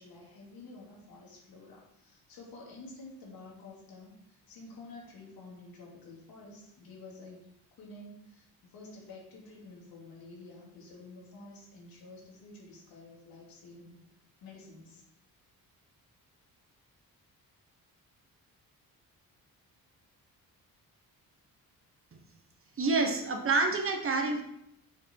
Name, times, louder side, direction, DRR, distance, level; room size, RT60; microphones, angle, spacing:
voice 1, 0.0-14.0 14.4-15.0, left 2 dB, 75° left, -2 dB, 2.7 m, -50 dB
voice 2, 22.8-24.4, right 3 dB, 35° right, 4 dB, 1.1 m, -27 dB
7.0 x 5.8 x 4.6 m, 0.78 s
cardioid pair, 135°, 36 cm